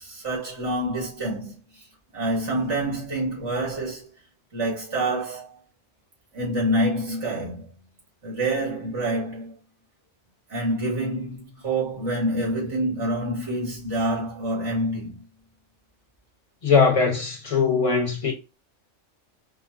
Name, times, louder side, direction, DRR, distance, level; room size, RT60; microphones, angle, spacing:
voice 1, 0.0-1.9 2.1-4.1 4.5-5.6 6.3-7.7 8.2-9.5 10.5-15.2, right 1 dB, 65° right, 2.2 m, -27 dB
voice 2, 16.6-18.3, left 5 dB, 30° left, 1.1 m, -20 dB
5.1 x 2.1 x 2.6 m
omnidirectional pair, 1.3 m